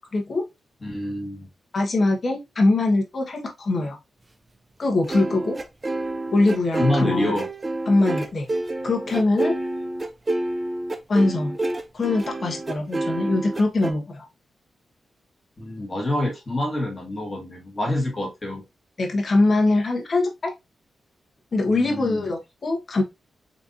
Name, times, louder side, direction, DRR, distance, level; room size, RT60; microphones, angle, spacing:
voice 1, 0.1-0.4 1.7-4.0 4.8-5.6 6.3-7.3 7.9-8.5 8.8-9.6 11.1-11.6 11.9-14.2 19.0-20.5 21.5-23.0, left 2 dB, 45° left, 1.2 m, -22 dB
voice 2, 0.8-1.5 6.8-7.5 15.6-18.6 21.7-22.3, left 1 dB, 30° left, 1.5 m, -27 dB
sound 1, 5.0-13.9, right 2 dB, 25° right, 0.5 m, -28 dB
4.0 x 3.3 x 2.6 m
cardioid pair, 85°, 0 cm